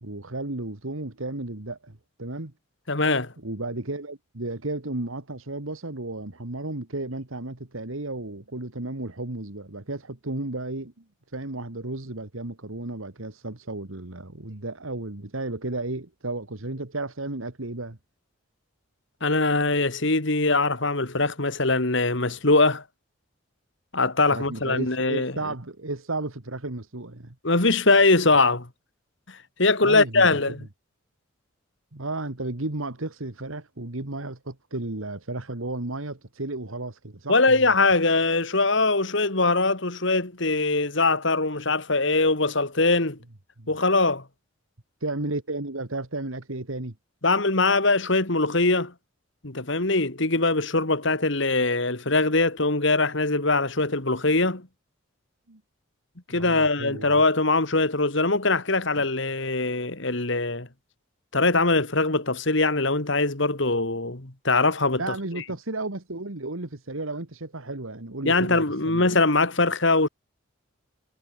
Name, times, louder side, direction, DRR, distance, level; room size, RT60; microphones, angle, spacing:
voice 1, 0.0-2.5 3.4-11.0 11.3-18.0 24.3-27.4 29.8-30.4 31.9-37.7 43.6-43.7 45.0-46.9 55.5-55.6 56.3-57.2 59.0-59.1 65.0-69.1, right 2 dB, 75° right, 2.1 m, -33 dB
voice 2, 2.9-3.3 19.2-22.8 23.9-25.3 27.4-28.7 29.3-30.7 37.3-43.2 43.7-44.2 47.2-48.9 49.4-54.7 56.3-60.7 61.3-65.1 68.2-70.1, left 3 dB, 60° left, 2.3 m, -22 dB
head